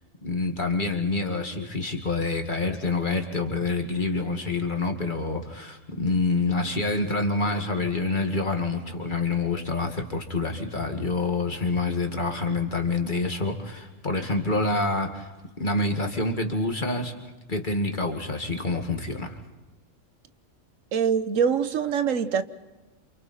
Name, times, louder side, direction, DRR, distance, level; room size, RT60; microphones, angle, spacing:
voice 1, 0.2-15.3 15.6-17.1 17.5-19.4, left 3 dB, 40° left, 2.3 m, -27 dB
voice 2, 20.9-22.4, right 7 dB, 90° right, 1.4 m, -24 dB
29.0 x 27.5 x 4.4 m
omnidirectional pair, 1.3 m